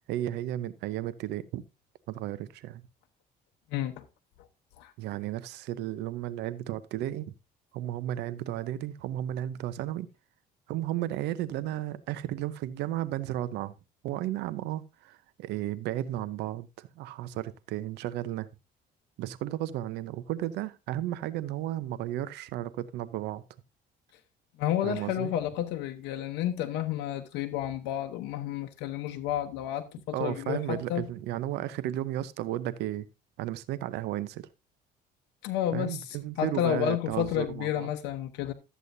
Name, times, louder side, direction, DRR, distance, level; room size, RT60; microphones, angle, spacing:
voice 1, 0.1-1.6 2.1-2.8 5.0-7.3 7.7-10.1 10.7-13.7 14.0-18.5 19.2-23.4 24.8-25.3 30.1-33.1 33.4-34.4 35.7-37.9, right 13 dB, 85° right, 0.6 m, -34 dB
voice 2, 3.7-4.0 4.8-4.9 24.6-31.0 35.4-36.0 36.4-38.5, left 11 dB, 90° left, 0.9 m, -31 dB
12.5 x 8.2 x 2.6 m
cardioid pair, 110°, 17 cm